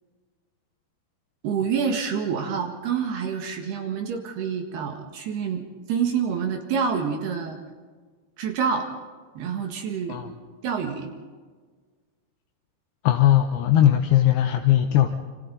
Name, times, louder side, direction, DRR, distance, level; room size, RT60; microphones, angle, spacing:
voice 1, 1.4-5.6 5.9-7.6 8.4-8.9 9.4-10.2 10.6-11.1, right 6 dB, 75° right, 2 dB, 3.7 m, -27 dB
voice 2, 13.0-15.1, left 12 dB, 80° left, 3 dB, 3.0 m, -19 dB
27.5 x 26.5 x 4.0 m, 1.5 s
omnidirectional pair, 4.8 m